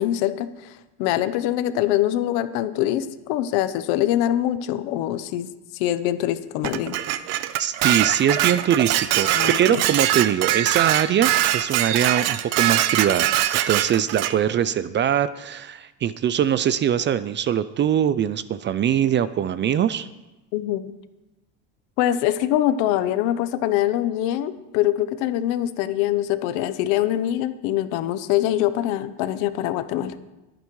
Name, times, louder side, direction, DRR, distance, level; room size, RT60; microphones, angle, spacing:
voice 1, 0.0-5.5 5.7-7.0 9.2-9.8 20.5-20.9 22.0-30.1, left 12 dB, 80° left, 13 dB, 0.9 m, -24 dB
Dishes pots and pans, 6.6-14.4, right 13 dB, 70° right, 0.7 m, -22 dB
voice 2, 7.6-13.4 13.7-20.1, right 9 dB, 30° right, 15 dB, 0.4 m, -22 dB
22.0 x 9.0 x 3.2 m, 1.0 s
cardioid pair, 120°, 39 cm